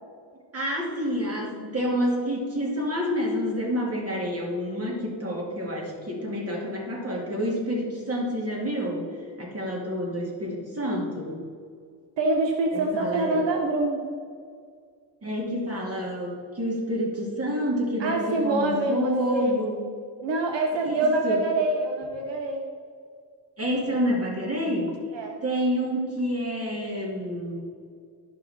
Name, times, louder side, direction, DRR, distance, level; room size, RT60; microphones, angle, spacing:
voice 1, 0.5-9.1 9.4-11.3 12.7-13.4 15.2-19.8 20.8-21.0 21.2-21.4 23.6-25.0 25.4-27.6, equal, 35° right, -3 dB, 2.5 m, -28 dB
voice 2, 12.2-14.0 18.0-19.5 20.2-22.6 25.1-25.4, right 2 dB, 80° right, 2 dB, 1.1 m, -25 dB
11.5 x 5.8 x 4.3 m, 2.2 s
cardioid pair, 115°, 43 cm